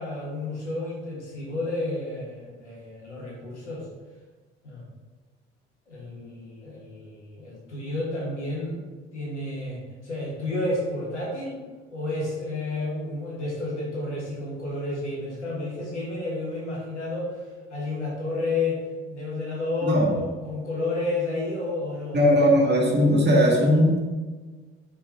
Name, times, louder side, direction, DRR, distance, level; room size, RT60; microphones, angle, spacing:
voice 1, 0.0-3.9 4.6-4.8 5.9-8.8 9.1-11.6 11.9-17.4 17.7-18.8 19.1-22.5, left 2 dB, 85° left, -4 dB, 1.6 m, -31 dB
voice 2, 22.1-24.1, equal, 30° right, -2 dB, 2.1 m, -19 dB
5.6 x 4.3 x 5.1 m, 1.3 s
figure-of-eight pair, 50°, 34 cm